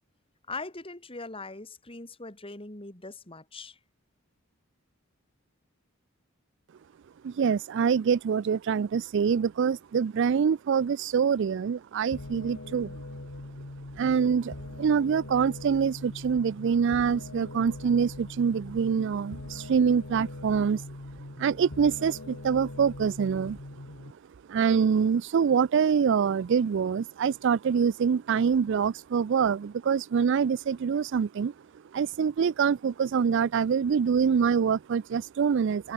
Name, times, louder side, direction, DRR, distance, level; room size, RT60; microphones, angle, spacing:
voice 1, 0.5-3.8, left 3 dB, 25° left, 3.8 m, -41 dB
voice 2, 7.2-13.0 14.0-20.8 21.4-23.6 24.5-31.5 31.9-35.9, right 6 dB, 60° right, 0.4 m, -25 dB
sound 1, 12.1-24.1, left 1 dB, 85° left, 1.9 m, -42 dB
head